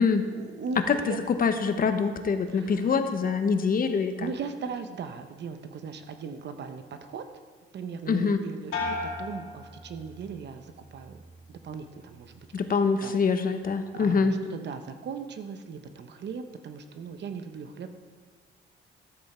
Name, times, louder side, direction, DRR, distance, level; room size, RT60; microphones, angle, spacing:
voice 1, 0.3-1.2 2.5-2.9 4.2-7.2 7.7-11.2 11.5-12.5 13.0-13.2 13.9-17.9, right 5 dB, 60° right, 8 dB, 0.9 m, -38 dB
voice 2, 0.9-4.3 8.1-8.4 12.5-14.3, left 5 dB, 45° left, 8 dB, 1.0 m, -25 dB
sound 1, 8.7-10.4 10.8-11.4, left 3 dB, 85° left, 2.4 m, -36 dB
13.0 x 7.9 x 4.4 m, 1.5 s
cardioid pair, 90°, 20 cm